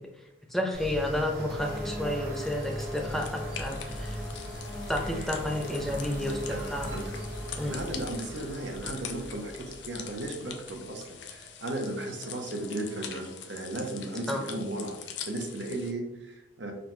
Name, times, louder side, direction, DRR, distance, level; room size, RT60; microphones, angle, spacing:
voice 1, 0.5-4.2 4.9-6.9 7.6-7.8 14.3-14.4, left 1 dB, ahead, 1 dB, 0.4 m, -31 dB
sound 1, 0.7-11.4, equal, 55° right, 1.1 m, -38 dB
sound 2, 1.3-13.6, left 3 dB, 20° left, 0.9 m, -50 dB
sound 3, 2.3-15.9, left 8 dB, 65° left, 0.5 m, -44 dB
voice 2, 7.6-15.0 15.3-16.7, right 1 dB, 70° right, 2 dB, 0.7 m, -35 dB
5.2 x 2.2 x 3.0 m, 0.91 s
head